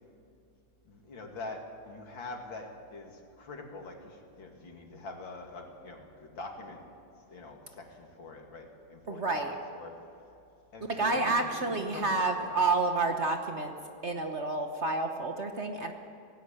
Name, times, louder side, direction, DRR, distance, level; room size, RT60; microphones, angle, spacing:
voice 1, 0.8-6.8 7.3-9.9 10.7-11.5 11.8-12.7, left 2 dB, 80° left, 2 dB, 3.1 m, -44 dB
voice 2, 9.1-9.5 10.9-13.7 14.0-15.9, right 3 dB, 45° right, 5 dB, 1.1 m, -29 dB
17.5 x 17.0 x 8.9 m, 2.6 s
omnidirectional pair, 2.1 m